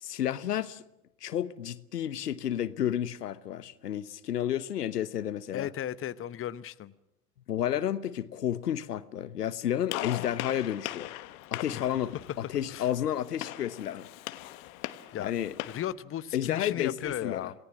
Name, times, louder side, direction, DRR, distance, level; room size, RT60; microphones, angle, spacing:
voice 1, 0.0-0.8 1.2-5.7 7.5-11.1 11.5-12.2 12.5-14.1 15.2-15.5 16.3-17.5, left 10 dB, 85° left, 1.1 m, -31 dB
voice 2, 5.5-6.9 11.7-11.8 12.7-12.9 15.1-15.3 15.7-17.5, left 11 dB, 30° left, 0.9 m, -35 dB
Gunshot gunfire, 9.9-15.9, left 16 dB, 65° left, 1.4 m, -40 dB
27.5 x 18.5 x 7.4 m
hypercardioid pair, 80°, 46 cm